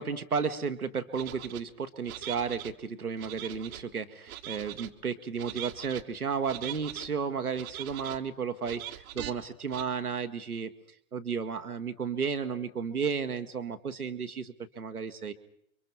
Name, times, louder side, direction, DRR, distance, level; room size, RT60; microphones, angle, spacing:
voice 1, 0.0-10.7 11.1-15.3, right 6 dB, 90° right, 7 dB, 1.2 m, -33 dB
sound 1, 1.1-1.6 2.0-2.7 3.2-3.8 4.3-4.9 5.4-6.0 6.4-7.1 7.5-8.2 8.6-9.3 9.7-9.8, right 13 dB, 70° right, 1.3 m, -41 dB
30.0 x 23.5 x 4.5 m, 0.72 s
figure-of-eight pair, 75°, 43 cm